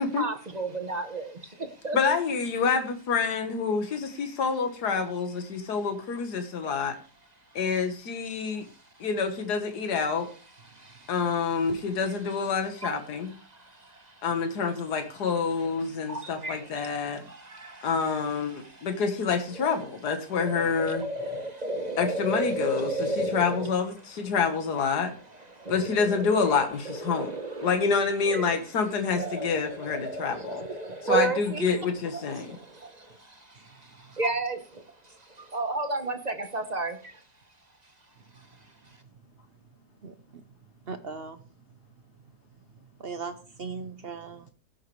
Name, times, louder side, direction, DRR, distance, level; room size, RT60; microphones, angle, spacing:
voice 1, 0.0-2.0 8.6-9.1 10.6-11.1 12.8-12.9 13.4-14.3 15.6-15.7 16.0-18.9 19.5-19.7 20.3-23.7 25.2-27.7 28.2-28.6 29.2-31.7 32.1-37.2, right 2 dB, 30° right, 6 dB, 0.9 m, -34 dB
voice 2, 1.9-7.0 7.6-8.7 9.0-10.3 11.1-13.3 14.2-17.2 17.8-21.0 22.0-25.1 25.7-27.3 27.6-30.6 31.0-32.6, left 5 dB, 70° left, 6 dB, 1.9 m, -27 dB
voice 3, 40.9-41.4 43.0-44.4, right 4 dB, 50° right, 10 dB, 0.7 m, -37 dB
17.0 x 7.3 x 3.2 m, 0.36 s
omnidirectional pair, 1.8 m